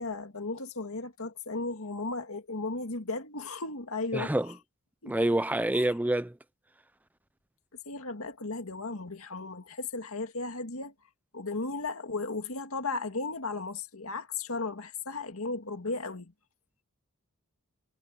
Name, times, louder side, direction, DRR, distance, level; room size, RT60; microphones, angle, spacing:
voice 1, 0.0-4.5 5.0-5.1 5.7-5.9 7.9-10.9 11.3-16.3, left 3 dB, 70° left, 2.2 m, -35 dB
voice 2, 4.1-4.5 5.1-6.3, right 1 dB, 5° right, 0.6 m, -27 dB
head